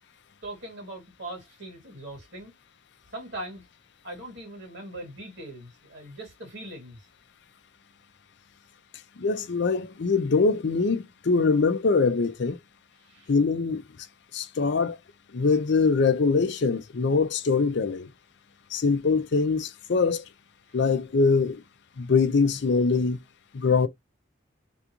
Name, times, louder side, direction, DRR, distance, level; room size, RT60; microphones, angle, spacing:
voice 1, 0.4-2.5 3.1-3.6 4.0-7.0 13.0-13.3, right 1 dB, 55° right, 2.2 m, -40 dB
voice 2, 9.2-12.6 13.3-13.8 14.3-15.0 15.3-18.1 18.7-20.2 20.7-21.6 22.0-23.2 23.5-23.9, left 4 dB, 55° left, 0.5 m, -23 dB
3.4 x 2.5 x 2.9 m
head